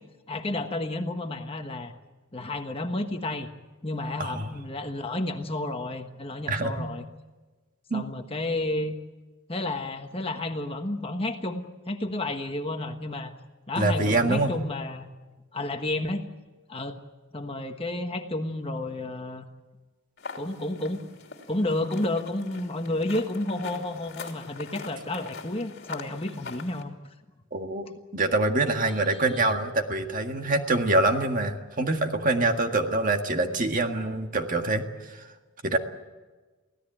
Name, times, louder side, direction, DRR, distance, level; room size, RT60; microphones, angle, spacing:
voice 1, 0.3-1.9 2.3-3.5 3.8-7.0 7.9-9.0 9.5-13.3 13.7-15.1 15.5-16.2 16.7-17.0 17.3-19.5 20.4-21.0 21.5-26.9 29.1-29.5, left 2 dB, 25° left, 6 dB, 1.3 m, -31 dB
voice 2, 6.4-6.9 7.9-8.0 13.8-14.5 27.5-35.2 35.6-35.8, right 2 dB, 35° right, 5 dB, 1.8 m, -25 dB
sound 1, 20.2-26.8, left 4 dB, 50° left, 3.0 m, -43 dB
24.5 x 17.0 x 9.0 m, 1.3 s
head